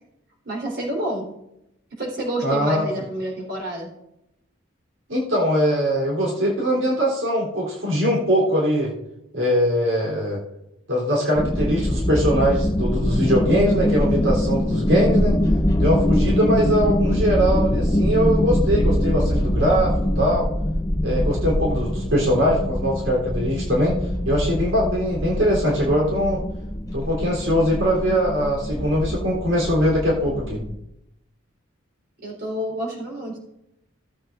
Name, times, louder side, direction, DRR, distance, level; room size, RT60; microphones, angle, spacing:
voice 1, 0.4-1.3 2.0-3.9 32.2-33.4, right 1 dB, 50° right, -2 dB, 4.2 m, -28 dB
voice 2, 2.4-2.9 5.1-8.9 9.3-10.4 10.9-15.4 15.8-20.5 21.0-26.4 26.9-30.6, equal, 75° right, -4 dB, 3.6 m, -21 dB
sound 1, 11.4-30.8, left 1 dB, 15° left, 0.7 m, -23 dB
18.0 x 8.1 x 2.6 m, 0.83 s
head